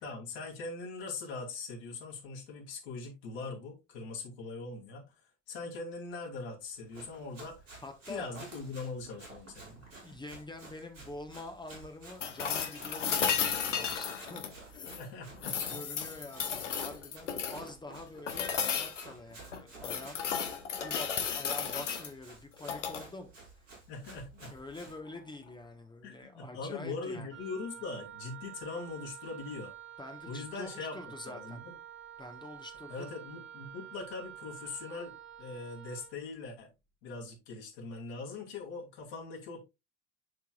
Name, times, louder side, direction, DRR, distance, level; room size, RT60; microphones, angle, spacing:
voice 1, 0.0-5.0 5.5-7.6 8.1-9.9 15.0-15.8 23.9-24.5 26.0-29.7 30.2-31.0 31.2-31.7 32.9-36.7 37.0-39.6, left 3 dB, 60° left, 3.0 m, -41 dB
Run, 6.7-25.0, right 3 dB, 80° right, 4.6 m, -53 dB
voice 2, 7.8-8.3 10.0-14.4 14.7-14.9 15.7-20.2 20.8-23.7 24.5-27.3 30.0-31.6 32.2-33.1, left 2 dB, 10° left, 1.2 m, -46 dB
sound 1, 12.2-15.0 15.4-17.7 18.3-19.1 19.5-22.1 22.6-23.0 25.1-25.2, left 7 dB, 75° left, 1.1 m, -34 dB
Wind instrument woodwind instrument, 27.3-36.2, right 10 dB, 30° right, 1.4 m, -49 dB
11.0 x 4.6 x 2.4 m
figure-of-eight pair, 65°, 37 cm